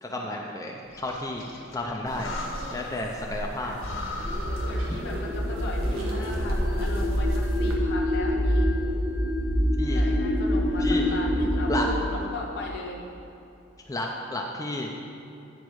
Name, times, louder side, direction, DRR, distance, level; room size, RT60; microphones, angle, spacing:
voice 1, 0.0-2.3 2.7-3.7 4.9-5.0 9.8-10.0 10.8-11.0 11.7-11.9 13.9-14.9, left 2 dB, 15° left, 0 dB, 0.5 m, -32 dB
Breathing, 0.9-3.1 3.4-3.5 3.8-5.5, left 2 dB, 80° left, 1.5 m, -38 dB
sound 1, 2.0-7.8, equal, 85° right, 1.2 m, -35 dB
voice 2, 2.1-2.5 3.6-3.8 4.6-8.7 9.9-13.0, left 2 dB, 55° left, -3 dB, 0.9 m, -37 dB
sound 2, 4.2-11.9, equal, 15° right, 0.7 m, -26 dB
10.0 x 5.1 x 4.7 m, 2.7 s
head